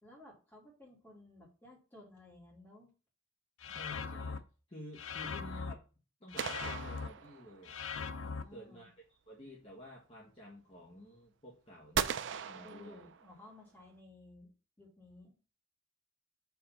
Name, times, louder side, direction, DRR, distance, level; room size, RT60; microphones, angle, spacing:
voice 1, 0.0-2.9 8.1-8.9 12.6-14.5 14.8-15.4, left 1 dB, 10° left, -3 dB, 2.3 m, -56 dB
sound 1, 3.6-4.4 5.0-5.7 6.3-7.1 7.7-8.4, left 5 dB, 85° left, 0.6 m, -40 dB
voice 2, 3.7-4.4 4.7-5.8 6.2-7.8 8.5-13.1, left 1 dB, 30° left, -5 dB, 1.3 m, -52 dB
sound 2, 6.4-7.8 11.9-13.5, right 8 dB, 60° right, 0.4 m, -38 dB
4.7 x 3.6 x 5.6 m, 0.34 s
head